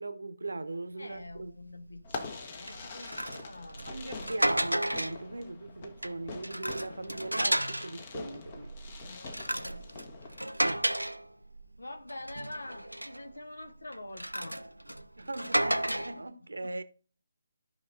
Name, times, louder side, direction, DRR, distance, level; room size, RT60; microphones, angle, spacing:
voice 1, 0.0-1.5 3.8-8.7 10.6-10.9 15.2-16.8, right 2 dB, 70° right, 0.8 m, -39 dB
voice 2, 1.0-3.9 9.0-9.9 11.8-14.6 16.6-16.8, left 1 dB, 70° left, 1.1 m, -46 dB
sound 1, 1.3-1.5 1.9-2.1 2.7-5.3 5.8-8.0 8.4-11.8 12.1-13.3 13.9-16.2, right 1 dB, 90° right, 0.5 m, -33 dB
Fireworks, 2.0-10.4, left 4 dB, 35° left, 1.1 m, -45 dB
14.5 x 5.4 x 2.5 m
figure-of-eight pair, 145°, 0 cm